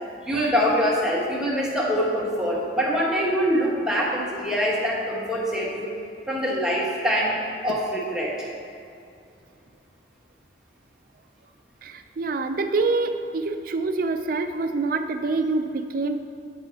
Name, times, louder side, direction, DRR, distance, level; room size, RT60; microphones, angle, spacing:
voice 1, 0.2-5.9 6.3-7.4 7.6-8.5, equal, 5° right, -5 dB, 1.3 m, -24 dB
voice 2, 11.8-16.2, right 3 dB, 55° right, 7 dB, 0.4 m, -26 dB
9.0 x 5.5 x 4.2 m, 2.4 s
head